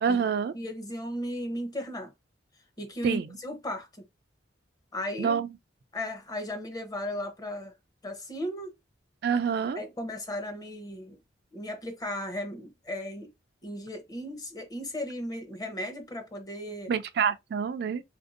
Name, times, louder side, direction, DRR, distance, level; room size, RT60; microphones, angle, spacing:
voice 1, 0.0-0.5 3.0-3.3 5.2-5.5 9.2-9.8 16.9-18.0, right 6 dB, 55° right, 0.3 m, -27 dB
voice 2, 0.5-2.1 2.8-4.1 4.9-5.4 5.9-7.7 8.0-8.7 9.8-11.2 11.5-13.3 13.6-16.9, left 1 dB, 20° left, 0.7 m, -36 dB
3.4 x 2.6 x 2.5 m
head